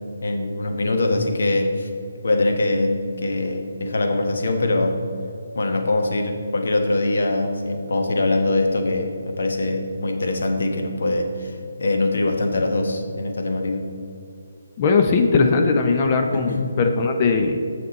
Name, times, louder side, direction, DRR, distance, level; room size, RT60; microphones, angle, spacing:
voice 1, 0.0-1.9 2.2-5.0 5.5-13.9 16.3-16.8, left 2 dB, 70° left, 4 dB, 1.1 m, -23 dB
voice 2, 14.8-17.6, left 4 dB, 30° left, 4 dB, 0.5 m, -19 dB
6.8 x 6.7 x 4.2 m, 2.5 s
hypercardioid pair, 160°, 0 cm